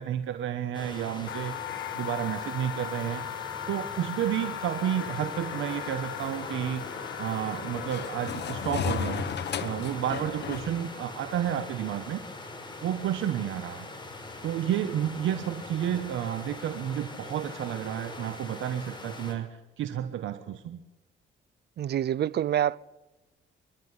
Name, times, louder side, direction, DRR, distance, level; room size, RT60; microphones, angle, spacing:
voice 1, 0.0-1.6 1.9-3.3 3.7-6.9 7.2-9.3 9.6-12.2 12.8-13.9 14.4-20.8, right 11 dB, 80° right, 1.2 m, -31 dB
sound 1, 0.7-19.3, left 2 dB, 20° left, 5.2 m, -42 dB
sound 2, 1.3-11.0, left 13 dB, 85° left, 1.9 m, -40 dB
sound 3, 4.9-10.8, left 7 dB, 60° left, 1.3 m, -36 dB
voice 2, 21.8-22.8, right 10 dB, 55° right, 0.6 m, -26 dB
25.5 x 11.5 x 9.9 m
cardioid pair, 90°, 20 cm